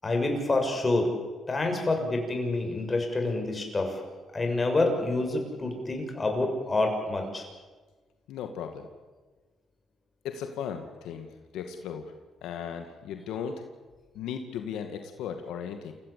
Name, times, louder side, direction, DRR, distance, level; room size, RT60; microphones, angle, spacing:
voice 1, 0.0-1.1 1.5-4.0 4.3-7.4, left 2 dB, 25° left, 3 dB, 6.8 m, -27 dB
voice 2, 8.3-8.9 10.2-11.3 11.5-12.1 12.4-13.6 14.1-15.9, left 7 dB, 85° left, 6 dB, 2.1 m, -36 dB
28.5 x 16.5 x 8.4 m, 1.3 s
cardioid pair, 90°, 0 cm